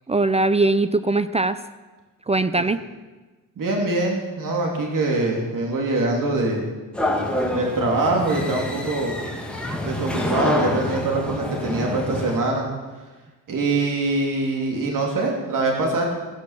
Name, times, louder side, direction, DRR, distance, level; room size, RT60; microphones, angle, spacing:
voice 1, 0.1-1.6 2.3-2.8, right 2 dB, 20° right, 13 dB, 0.4 m, -20 dB
voice 2, 3.6-6.6 7.5-9.2 9.8-12.7 13.5-16.1, right 2 dB, 70° right, 0 dB, 3.1 m, -23 dB
sound 1, 6.9-12.4, left 1 dB, 5° left, 2.0 m, -27 dB
16.5 x 9.6 x 7.4 m, 1.2 s
wide cardioid pair, 135°, 34 cm